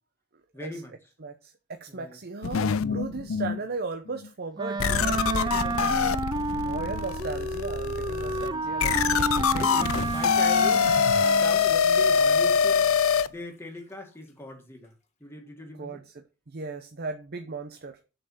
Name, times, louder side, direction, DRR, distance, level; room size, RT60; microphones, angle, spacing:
voice 1, 0.5-0.9 1.9-2.2 2.9-3.3 5.1-5.7 8.2-8.8 9.4-12.9 13.2-14.9 15.2-16.0, left 1 dB, 10° left, 2.0 m, -41 dB
voice 2, 1.2-6.3 6.5-9.0 9.5-9.9 15.8-18.0, right 3 dB, 45° right, 0.7 m, -37 dB
sound 1, 2.4-3.6 4.2-4.3 4.8-13.3, left 6 dB, 70° left, 0.5 m, -24 dB
Wind instrument woodwind instrument, 4.6-11.7, right 3 dB, 20° right, 0.4 m, -30 dB
Bathtub (filling or washing), 9.8-14.3 14.8-14.9, left 5 dB, 30° left, 1.6 m, -46 dB
7.0 x 5.5 x 7.3 m
head